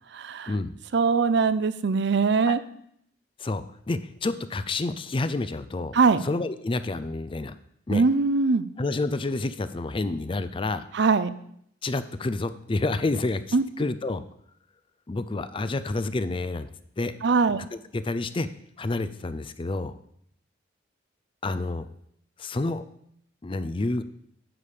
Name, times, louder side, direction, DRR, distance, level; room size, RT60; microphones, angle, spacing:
voice 1, 0.1-0.5 0.9-2.6 5.9-6.3 7.9-8.7 10.9-11.3 13.5-13.6 17.2-17.6, right 4 dB, 60° right, 14 dB, 0.5 m, -21 dB
voice 2, 3.4-5.9 6.2-7.5 7.9-8.0 8.8-10.9 11.8-14.2 15.1-16.7 17.0-17.1 17.7-18.5 18.8-20.0 21.4-21.9 22.4-22.8 23.4-24.0, left 2 dB, 25° left, 13 dB, 0.4 m, -29 dB
9.8 x 7.0 x 4.9 m, 0.71 s
head